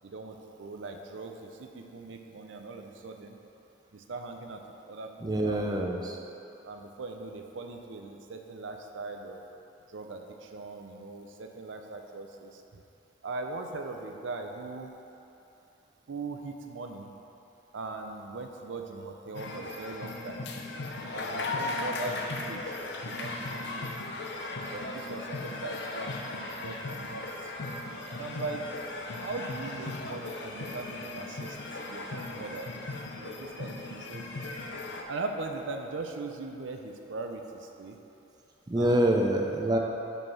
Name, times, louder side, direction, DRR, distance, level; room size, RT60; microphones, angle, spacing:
voice 1, 0.0-3.4 3.9-5.8 6.6-9.4 9.9-12.8 13.2-14.9 16.1-17.1 17.7-20.5 21.1-22.8 23.0-23.9 24.7-27.5 28.1-28.6 29.2-32.7 33.1-34.2 35.1-38.0 38.7-39.2, right 3 dB, 90° right, 4 dB, 0.5 m, -40 dB
voice 2, 5.2-6.2 38.7-39.8, right 1 dB, 20° right, 1 dB, 0.4 m, -26 dB
sound 1, 19.3-35.0, left 2 dB, 70° left, 0.6 m, -37 dB
5.3 x 4.7 x 5.6 m, 2.9 s
head